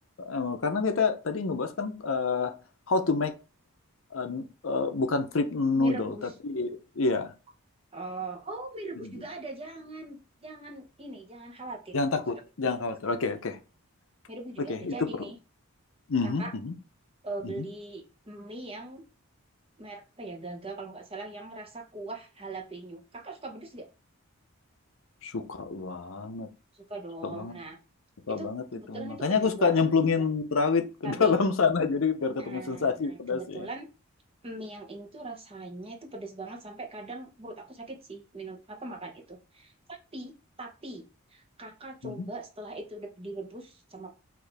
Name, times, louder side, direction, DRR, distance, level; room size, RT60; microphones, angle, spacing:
voice 1, 0.2-2.5 2.9-3.3 4.1-6.2 6.4-7.3 9.0-9.2 11.9-13.6 14.7-14.9 16.1-16.7 17.4-17.7 25.2-26.5 27.2-27.6 28.3-33.7 42.0-42.3, left 4 dB, 65° left, 0.6 m, -28 dB
voice 2, 5.8-6.3 7.9-12.0 12.6-12.9 14.3-15.4 16.4-16.5 17.2-19.0 19.8-23.9 26.7-27.8 28.3-29.8 31.0-31.3 32.4-33.9 34.4-41.0 41.3-44.2, right 2 dB, 25° right, 0.9 m, -41 dB
6.0 x 2.6 x 3.4 m
head